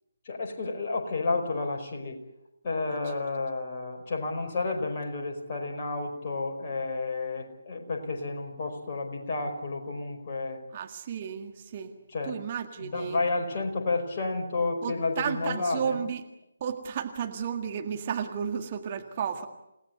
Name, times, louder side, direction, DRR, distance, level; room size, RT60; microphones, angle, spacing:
voice 1, 0.2-2.2 2.6-10.6 12.1-12.4 12.8-16.0, left 3 dB, 35° left, 2 dB, 5.0 m, -31 dB
voice 2, 10.7-11.9 12.3-13.2 14.8-16.2 16.6-19.5, right 7 dB, 30° right, 5 dB, 1.9 m, -33 dB
29.0 x 18.5 x 8.2 m, 0.87 s
figure-of-eight pair, 145°, 0 cm